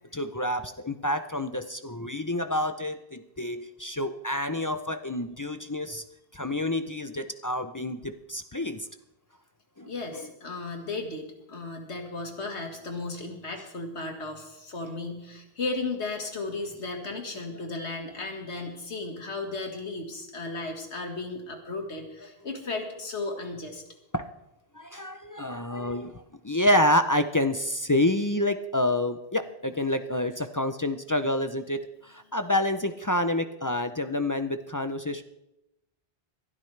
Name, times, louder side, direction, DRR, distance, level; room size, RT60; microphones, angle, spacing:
voice 1, 0.1-6.0 6.3-8.9 9.8-10.3 24.1-24.3 24.8-35.2, left 1 dB, 30° left, 9 dB, 0.4 m, -28 dB
voice 2, 9.8-23.8, left 3 dB, 85° left, 3 dB, 2.0 m, -35 dB
22.0 x 12.5 x 3.3 m, 0.89 s
omnidirectional pair, 1.1 m